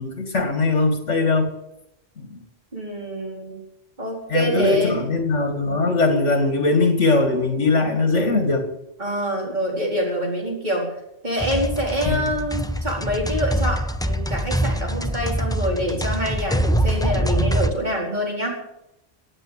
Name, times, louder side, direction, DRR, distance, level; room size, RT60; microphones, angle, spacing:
voice 1, 0.0-1.5 2.2-2.4 4.3-8.6 12.1-12.2, left 3 dB, 70° left, 5 dB, 2.6 m, -20 dB
voice 2, 2.7-3.6 4.0-5.0 9.0-10.9 11.2-18.6, equal, 35° right, -2 dB, 4.7 m, -26 dB
sound 1, 11.4-17.7, right 1 dB, 5° left, 0.5 m, -24 dB
17.0 x 9.0 x 8.2 m, 0.82 s
omnidirectional pair, 1.3 m